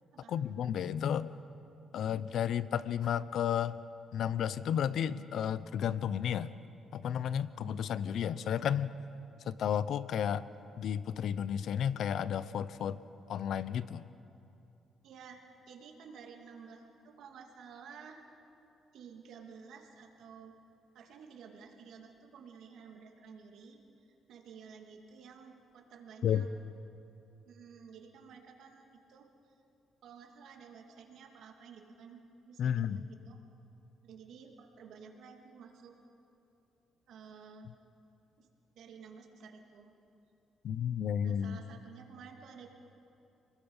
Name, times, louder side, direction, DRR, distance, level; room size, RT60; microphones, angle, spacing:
voice 1, 0.3-1.3 1.9-3.8 4.1-6.5 6.9-8.9 9.5-10.5 10.8-13.0 13.3-14.0 26.2-26.5 32.6-33.0 40.6-41.6, left 9 dB, 70° left, 15 dB, 0.7 m, -32 dB
voice 2, 15.0-18.2 18.9-20.6 20.9-23.8 24.3-26.5 27.4-29.3 30.0-33.4 34.0-35.9 37.1-37.7 38.4-38.5 38.7-39.9 41.2-42.7, right 6 dB, 75° right, 2 dB, 2.7 m, -52 dB
28.5 x 20.5 x 5.7 m, 2.8 s
cardioid pair, 90°, 0 cm